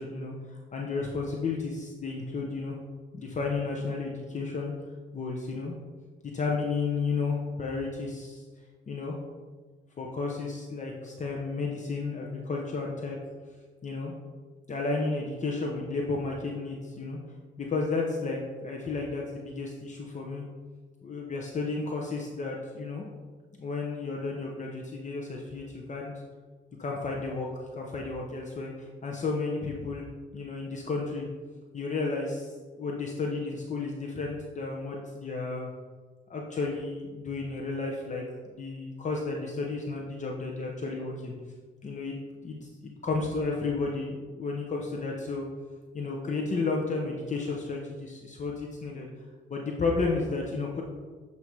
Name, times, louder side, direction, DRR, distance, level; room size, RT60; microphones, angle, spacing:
voice 1, 0.0-2.8 3.1-4.7 5.1-5.7 6.2-8.4 8.9-9.1 10.0-13.2 13.8-14.1 14.7-17.2 17.6-20.4 21.0-23.0 23.6-26.2 26.8-27.5 27.7-30.0 30.3-31.3 31.7-32.5 32.8-35.7 36.3-41.3 41.8-42.2 42.4-45.5 45.9-49.1 49.5-50.8, left 3 dB, 40° left, -1 dB, 0.8 m, -32 dB
7.9 x 2.8 x 4.6 m, 1.4 s
cardioid pair, 90°, 20 cm